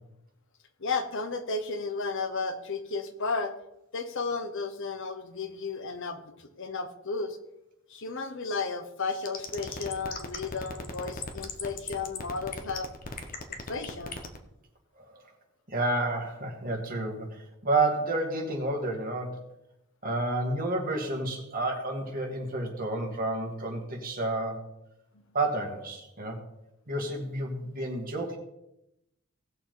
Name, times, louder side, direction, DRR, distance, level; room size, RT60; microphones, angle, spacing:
voice 1, 0.8-3.5 3.9-7.4 7.9-12.9 13.5-14.1 27.6-27.7, left 4 dB, 65° left, 8 dB, 1.1 m, -33 dB
sound 1, 9.3-14.4, left 5 dB, 45° left, 1.3 m, -37 dB
voice 2, 15.7-19.4 20.0-24.7 25.3-26.4 26.9-28.4, right 2 dB, 45° right, 0 dB, 2.3 m, -30 dB
18.0 x 6.7 x 3.9 m, 0.86 s
head